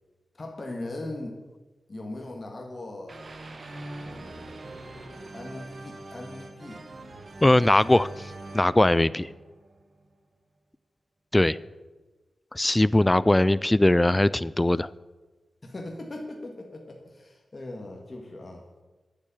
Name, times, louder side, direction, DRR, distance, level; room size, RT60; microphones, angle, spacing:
voice 1, 0.3-1.4 1.9-3.2 4.0-4.6 5.3-6.9 15.6-18.6, left 2 dB, 40° left, 1 dB, 1.8 m, -39 dB
sound 1, 3.1-10.1, right 2 dB, 55° right, 1.7 m, -43 dB
voice 2, 7.4-9.3 11.3-11.6 12.5-14.9, left 1 dB, 15° left, 18 dB, 0.3 m, -21 dB
9.5 x 7.3 x 9.0 m, 1.2 s
cardioid pair, 60°, 0 cm